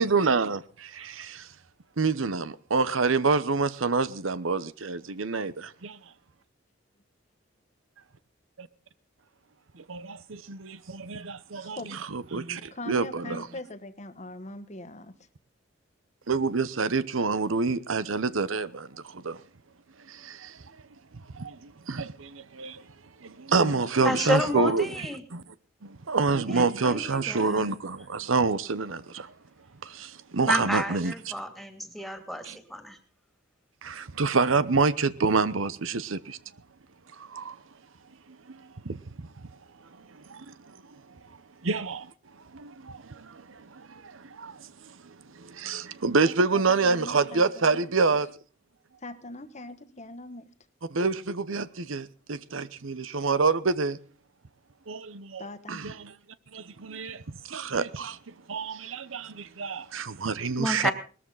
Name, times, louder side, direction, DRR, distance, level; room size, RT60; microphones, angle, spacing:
voice 1, 0.0-0.6 0.9-1.5 2.0-6.0 8.6-8.7 9.9-13.5 16.3-19.4 20.1-20.5 21.3-22.8 23.2-24.8 25.3-25.4 25.8-29.3 29.8-31.1 32.4-32.6 33.8-36.4 37.2-37.5 38.5-38.6 38.8-39.0 40.3-40.5 41.6-42.1 42.5-44.6 45.4-48.3 50.9-54.0 54.9-56.1 56.5-57.2 57.5-58.2 58.5-60.9, right 4 dB, 90° right, 0.9 m, -27 dB
voice 2, 12.7-15.1 23.6-24.3 41.6-41.7 46.2-47.9 49.0-50.5 55.4-55.8, left 1 dB, 35° left, 1.3 m, -41 dB
voice 3, 24.0-25.2 26.5-27.8 30.4-33.0 60.6-60.9, equal, ahead, 2.5 m, -30 dB
20.0 x 13.5 x 4.0 m
head